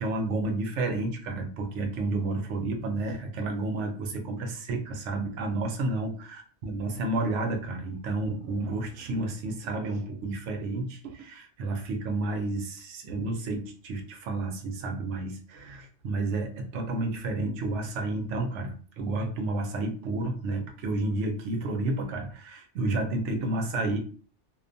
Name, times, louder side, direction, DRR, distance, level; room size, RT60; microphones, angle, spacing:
voice 1, 0.0-24.0, right 2 dB, 80° right, 4 dB, 0.9 m, -31 dB
2.5 x 2.2 x 2.5 m, 0.41 s
omnidirectional pair, 1.2 m